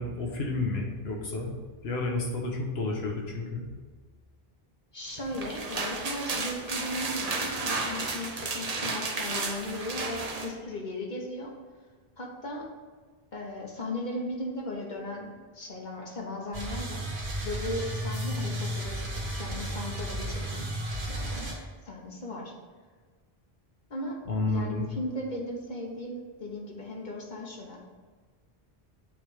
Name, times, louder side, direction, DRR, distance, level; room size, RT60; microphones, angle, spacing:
voice 1, 0.0-1.5 1.8-3.7 24.3-24.8, left 2 dB, 80° left, 0 dB, 1.2 m, -30 dB
voice 2, 4.9-11.5 12.2-12.7 13.3-17.1 17.4-20.7 21.1-22.5 23.9-24.2 24.5-27.8, left 1 dB, 50° left, -1 dB, 1.0 m, -37 dB
sound 1, 5.2-10.5, right 3 dB, 45° right, 0.7 m, -33 dB
sound 2, 16.5-21.5, right 1 dB, 80° right, 1.5 m, -33 dB
7.1 x 3.3 x 4.9 m, 1.5 s
omnidirectional pair, 1.0 m